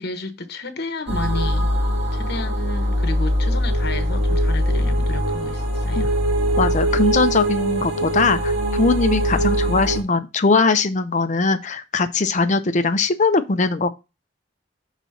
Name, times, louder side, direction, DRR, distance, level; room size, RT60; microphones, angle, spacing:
voice 1, 0.0-1.7 2.1-6.1, left 3 dB, 55° left, 1.1 m, -32 dB
sound 1, 1.1-10.0, equal, 70° right, 2.3 m, -21 dB
voice 2, 6.6-13.9, left 3 dB, 40° left, 0.6 m, -20 dB
6.2 x 4.0 x 5.6 m
head